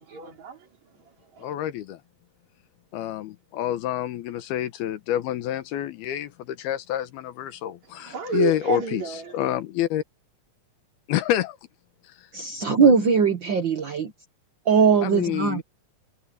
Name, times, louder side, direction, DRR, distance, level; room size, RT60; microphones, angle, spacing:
voice 1, 0.0-1.5 7.8-9.4, right 6 dB, 45° right, 5.4 m, -31 dB
voice 2, 1.4-2.0 2.9-9.0 9.3-10.0 11.1-11.6 12.8-12.9 15.0-15.6, left 12 dB, 85° left, 3.1 m, -28 dB
voice 3, 12.3-14.1 14.6-15.6, right 5 dB, 85° right, 1.0 m, -20 dB
omnidirectional pair, 4.4 m